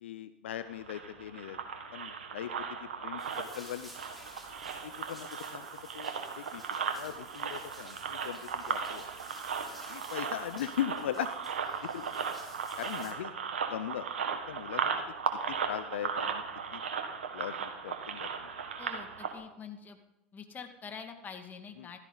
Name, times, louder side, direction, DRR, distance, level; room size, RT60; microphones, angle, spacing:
voice 1, 0.0-1.6 1.9-3.9 4.8-5.7 5.9-6.6 7.0-9.1 9.9-11.3 11.8-12.1 12.8-13.3 13.7-14.8 15.5-16.4 16.7-16.8 17.3-18.5 21.8-21.9, left 11 dB, 80° left, 12 dB, 0.6 m, -39 dB
sound 1, 0.6-19.3, right 6 dB, 85° right, 1.6 m, -37 dB
sound 2, 3.2-13.1, equal, ahead, 3.8 m, -53 dB
voice 2, 18.8-20.0 20.3-22.0, left 6 dB, 30° left, 5 dB, 2.1 m, -45 dB
15.5 x 13.5 x 4.0 m, 0.86 s
hypercardioid pair, 85°, 6 cm